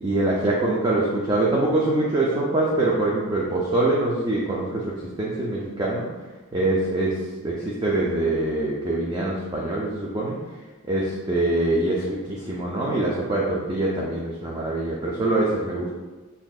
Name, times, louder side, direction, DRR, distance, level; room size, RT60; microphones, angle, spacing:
voice 1, 0.0-6.1 6.5-7.2 7.4-10.4 10.9-15.9, right 2 dB, 20° right, -4 dB, 0.4 m, -24 dB
5.9 x 2.7 x 2.3 m, 1.2 s
head